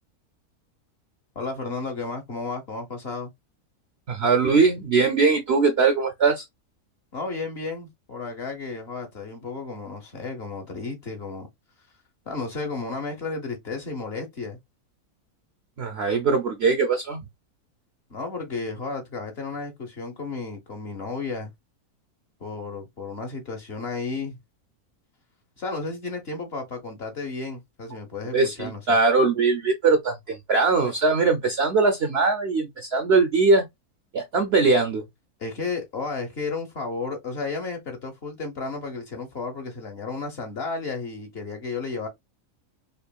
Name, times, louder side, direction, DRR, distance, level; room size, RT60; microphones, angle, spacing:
voice 1, 1.3-3.3 7.1-11.5 12.3-14.6 18.1-21.5 22.4-24.4 25.6-29.0 35.4-42.1, left 4 dB, 45° left, 1.1 m, -33 dB
voice 2, 4.1-6.4 15.8-17.2 28.3-33.7 34.1-35.0, right 4 dB, 60° right, 0.7 m, -21 dB
5.2 x 2.5 x 2.3 m
omnidirectional pair, 1.6 m